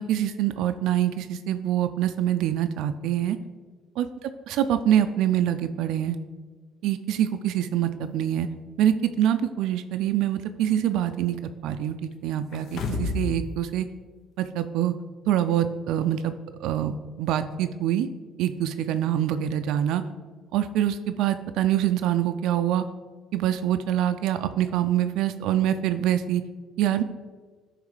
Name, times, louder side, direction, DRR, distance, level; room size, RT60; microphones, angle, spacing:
voice 1, 0.0-3.4 4.0-6.2 6.8-8.5 8.8-11.4 11.6-13.9 14.4-14.9 15.3-16.4 16.6-18.1 18.4-20.0 20.5-22.8 23.3-26.4 26.8-27.0, right 11 dB, 80° right, 9 dB, 0.3 m, -25 dB
sound 1, 12.5-13.4 13.7-13.8, left 4 dB, 65° left, 0.7 m, -29 dB
9.5 x 3.2 x 4.9 m, 1.5 s
cardioid pair, 85°, 0 cm